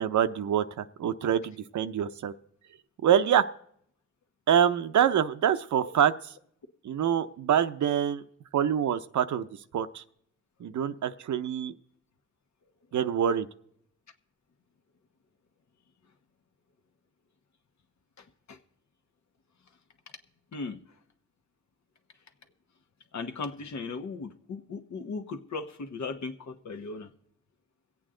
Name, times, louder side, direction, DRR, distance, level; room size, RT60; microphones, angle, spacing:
voice 1, 0.0-2.3 3.0-3.4 4.5-6.1 6.8-8.2 8.5-9.5 9.7-10.0 10.6-11.7 12.9-13.5, right 9 dB, 75° right, 12 dB, 0.6 m, -25 dB
voice 2, 18.2-18.6 20.5-20.8 23.1-27.1, left 4 dB, 70° left, 7 dB, 1.2 m, -37 dB
23.0 x 8.4 x 3.8 m, 0.70 s
cardioid pair, 80°, 29 cm